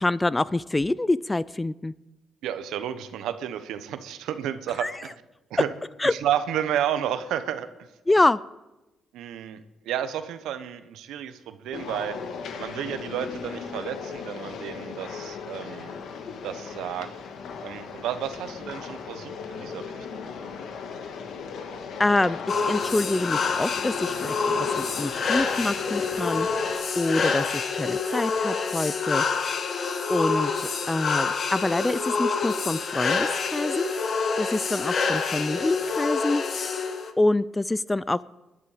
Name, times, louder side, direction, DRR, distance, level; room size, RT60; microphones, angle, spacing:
voice 1, 0.0-1.9 4.8-4.9 6.0-6.1 8.1-8.4 22.0-29.6 30.1-33.9 34.4-36.4 37.2-38.2, left 2 dB, 15° left, 19 dB, 0.4 m, -26 dB
voice 2, 2.4-5.1 5.5-5.7 6.1-7.7 9.1-12.2 12.6-15.9 16.4-17.1 17.6-19.8 20.1-20.2, right 10 dB, 85° right, 11 dB, 0.9 m, -31 dB
sound 1, 11.7-26.7, left 6 dB, 70° left, 1.6 m, -37 dB
sound 2, 22.5-37.1, left 5 dB, 50° left, 1.2 m, -27 dB
19.5 x 11.0 x 5.0 m, 1.0 s
cardioid pair, 90°, 0 cm